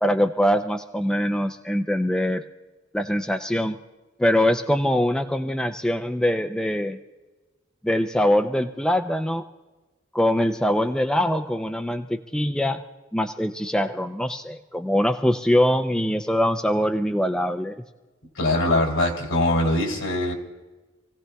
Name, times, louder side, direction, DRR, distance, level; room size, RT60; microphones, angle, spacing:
voice 1, 0.0-2.4 2.9-3.8 4.2-7.0 7.8-9.4 10.1-12.8 13.1-17.8, equal, 5° left, 5 dB, 0.4 m, -23 dB
voice 2, 18.3-20.3, left 1 dB, 75° left, 0 dB, 3.2 m, -22 dB
27.5 x 16.0 x 2.3 m, 1.2 s
head